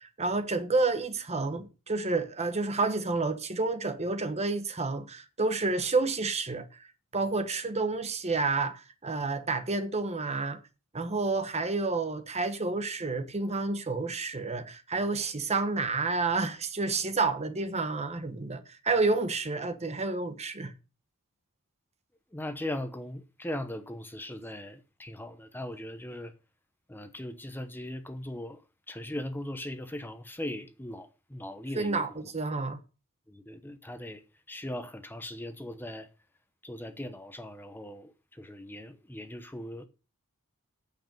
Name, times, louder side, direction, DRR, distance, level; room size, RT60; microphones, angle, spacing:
voice 1, 0.0-6.7 7.1-10.6 10.9-20.7 31.8-32.8, right 3 dB, 30° right, 1.1 m, -29 dB
voice 2, 22.3-26.3 26.9-28.6 28.9-32.1 33.3-36.1 36.6-39.9, left 1 dB, 10° left, 0.9 m, -39 dB
9.1 x 8.0 x 5.3 m
head